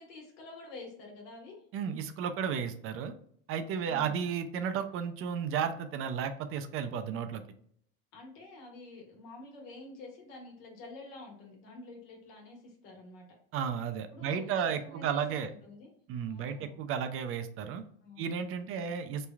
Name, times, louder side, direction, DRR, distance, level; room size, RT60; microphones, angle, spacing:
voice 1, 0.0-1.6 3.8-4.2 8.1-13.3 14.1-15.9 16.3-16.8 18.0-18.3 18.7-18.9, left 3 dB, 80° left, 0 dB, 1.3 m, -48 dB
voice 2, 1.7-3.1 3.5-7.4 13.5-15.5 16.1-17.8 18.2-19.3, right 7 dB, 45° right, 9 dB, 0.4 m, -33 dB
3.1 x 2.3 x 2.3 m, 0.63 s
supercardioid pair, 110°, 30 cm